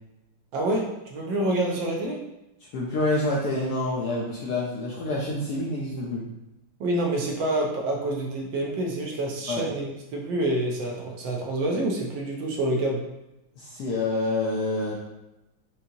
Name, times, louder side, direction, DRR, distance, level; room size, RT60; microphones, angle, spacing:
voice 1, 0.5-2.2 6.8-13.1, right 1 dB, 70° right, -1 dB, 1.3 m, -27 dB
voice 2, 2.7-6.2 9.5-9.7 13.6-14.9, left 2 dB, 70° left, -4 dB, 1.0 m, -27 dB
5.3 x 2.7 x 2.7 m, 0.95 s
omnidirectional pair, 2.3 m